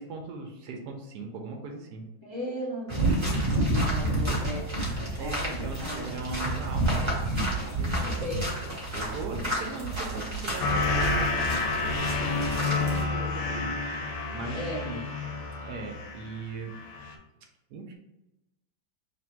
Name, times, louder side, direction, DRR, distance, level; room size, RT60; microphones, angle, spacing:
voice 1, 0.0-2.0 5.1-8.2 8.9-11.8 12.1-13.8 14.3-15.0 15.6-16.7 17.7-18.0, right 3 dB, 70° right, 2 dB, 1.1 m, -39 dB
voice 2, 2.2-4.7 5.2-6.2 8.0-8.6 12.6-13.1 14.5-14.9, equal, 40° right, -5 dB, 0.4 m, -37 dB
sound 1, 2.9-13.0, right 1 dB, 20° right, 0.8 m, -29 dB
sound 2, 10.6-16.4 16.7-17.1, left 3 dB, 75° left, 1.2 m, -29 dB
3.4 x 2.5 x 4.3 m, 0.96 s
omnidirectional pair, 2.1 m